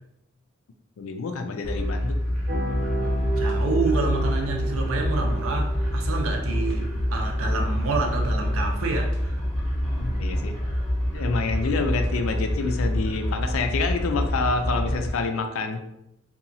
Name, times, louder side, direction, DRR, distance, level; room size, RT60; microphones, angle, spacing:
voice 1, 1.0-2.2 10.0-10.5 11.1-15.8, left 4 dB, 85° left, 6 dB, 0.4 m, -27 dB
sound 1, 1.6-15.1, equal, 5° left, 0.7 m, -26 dB
sound 2, 2.5-7.7, right 3 dB, 50° right, 0.7 m, -34 dB
voice 2, 3.4-9.4, right 3 dB, 90° right, 1 dB, 0.5 m, -28 dB
2.8 x 2.3 x 2.6 m, 0.83 s
head